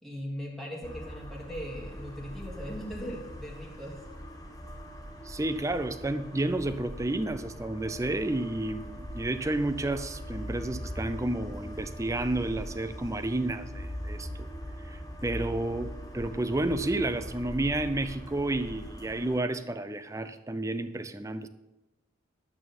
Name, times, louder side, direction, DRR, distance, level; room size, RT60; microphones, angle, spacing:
voice 1, 0.0-4.0, equal, ahead, -3 dB, 1.6 m, -39 dB
sound 1, 0.8-19.4, equal, 20° left, 1.0 m, -41 dB
voice 2, 5.2-14.5 14.9-21.5, right 2 dB, 15° right, 11 dB, 0.5 m, -31 dB
11.0 x 8.8 x 4.3 m, 1.1 s
head